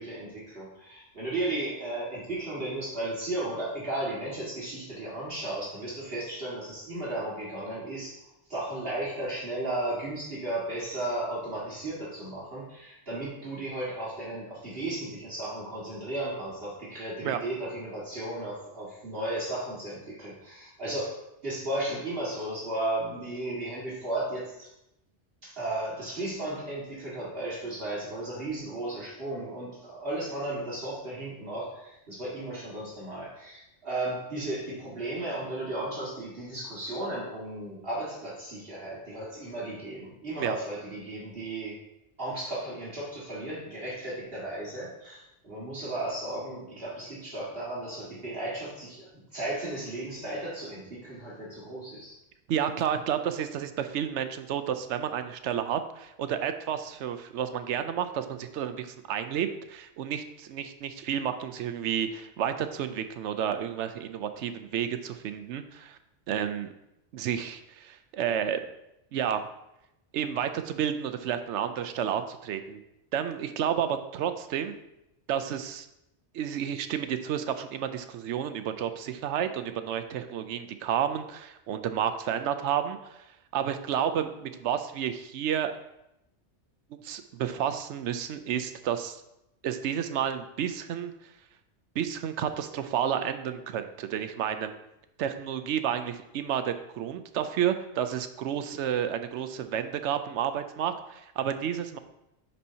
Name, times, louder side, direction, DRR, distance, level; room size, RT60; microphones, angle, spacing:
voice 1, 0.0-8.2 8.5-21.1 21.4-24.7 25.4-41.8 42.2-52.2, right 1 dB, 55° right, -7 dB, 2.1 m, -35 dB
voice 2, 52.5-66.0 66.3-66.7 67.1-68.6 69.1-69.4 70.1-72.8 73.1-74.7 75.3-75.9 76.3-83.2 83.5-85.7 87.0-89.2 89.6-91.1 92.0-94.7 95.2-102.0, right 9 dB, 75° right, 9 dB, 0.9 m, -31 dB
9.8 x 4.3 x 2.8 m, 0.86 s
omnidirectional pair, 1.2 m